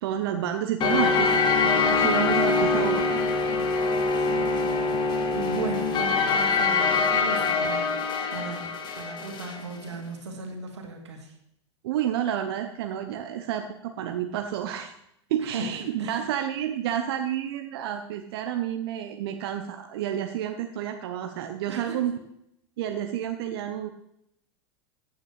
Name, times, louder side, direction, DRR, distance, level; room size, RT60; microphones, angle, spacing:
voice 1, 0.0-3.2 11.8-14.9 15.3-22.1 22.8-23.9, right 10 dB, 60° right, 6 dB, 0.9 m, -30 dB
sound 1, 0.8-9.6, left 4 dB, 30° left, 1.4 m, -24 dB
voice 2, 4.2-11.3 15.4-16.3 21.7-22.0, right 3 dB, 75° right, 3 dB, 2.4 m, -37 dB
14.5 x 9.2 x 3.3 m, 0.76 s
figure-of-eight pair, 90°, 15 cm